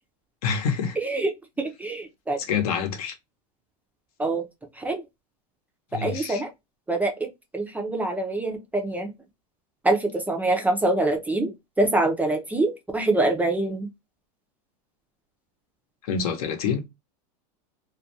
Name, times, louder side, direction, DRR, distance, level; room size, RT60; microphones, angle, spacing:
voice 1, 0.4-1.0 2.4-3.2 5.9-6.4 16.0-16.8, left 6 dB, 70° left, 0.8 m, -27 dB
voice 2, 1.0-1.3 1.6-2.4 4.2-4.5 4.8-5.0 5.9-6.5 6.9-9.1 9.8-11.5 11.8-13.9, right 2 dB, 10° right, 0.4 m, -25 dB
2.4 x 2.2 x 2.6 m
supercardioid pair, 135°, 20 cm